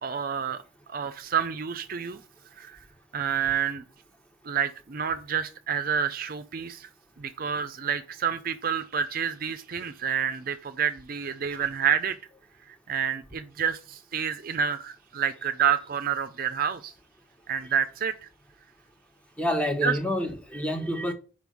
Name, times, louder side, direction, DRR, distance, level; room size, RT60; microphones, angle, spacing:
voice 1, 0.0-0.6 0.9-2.2 2.6-2.8 3.1-3.8 4.4-6.9 7.2-12.2 12.9-16.9 17.5-18.3 19.8-20.0, right 7 dB, 45° right, 0.5 m, -28 dB
voice 2, 19.4-21.1, equal, 5° left, 0.9 m, -28 dB
5.3 x 5.1 x 6.2 m
head